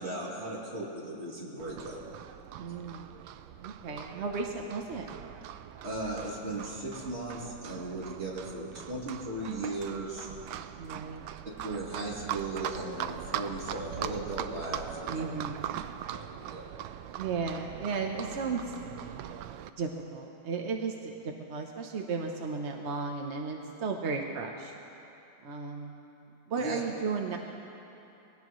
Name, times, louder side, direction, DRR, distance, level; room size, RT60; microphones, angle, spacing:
voice 1, 0.0-2.0 5.8-10.3 11.6-15.3 16.1-16.8 26.6-26.8, right 2 dB, 35° right, -5 dB, 2.9 m, -37 dB
Livestock farm animals working animals, 1.6-19.7, right 11 dB, 80° right, 1.3 m, -41 dB
voice 2, 2.6-3.1 3.6-5.1 10.8-11.3 15.1-15.6 17.2-18.7 19.8-24.7 25.4-25.9 26.5-27.4, right 4 dB, 55° right, 2 dB, 0.8 m, -34 dB
22.0 x 18.0 x 3.1 m, 2.9 s
omnidirectional pair, 2.1 m